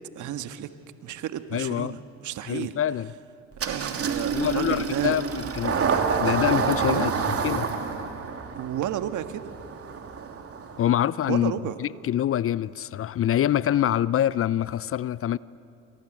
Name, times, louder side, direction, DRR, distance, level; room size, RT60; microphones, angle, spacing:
voice 1, 0.2-0.7 1.0-2.8 3.6-5.2 6.9-7.1 8.6-9.4 11.3-11.8, right 11 dB, 55° right, 1.7 m, -32 dB
voice 2, 1.5-1.9 2.5-3.1 4.3-5.9 6.2-7.1 7.4-7.7 10.8-11.5 11.8-15.4, left 11 dB, 40° left, 0.6 m, -25 dB
Engine starting, 3.6-10.9, right 6 dB, 40° right, 3.1 m, -28 dB
29.0 x 26.5 x 7.8 m
hypercardioid pair, 65°, 36 cm